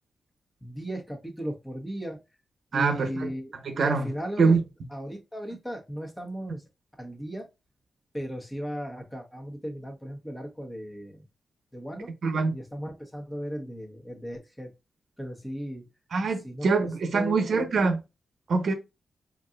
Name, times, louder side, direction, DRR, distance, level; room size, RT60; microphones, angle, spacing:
voice 1, 0.6-2.2 2.7-4.6 4.9-6.6 7.0-7.5 8.1-11.2 11.7-12.1 12.5-14.7 15.2-15.8 16.4-16.9 17.1-17.7, equal, 10° left, 1.3 m, -36 dB
voice 2, 2.7-3.3 3.6-4.1 4.4-4.6 12.2-12.6 16.1-18.0 18.5-18.7, right 4 dB, 70° right, 0.9 m, -24 dB
4.5 x 2.8 x 2.5 m
cardioid pair, 70°, 0 cm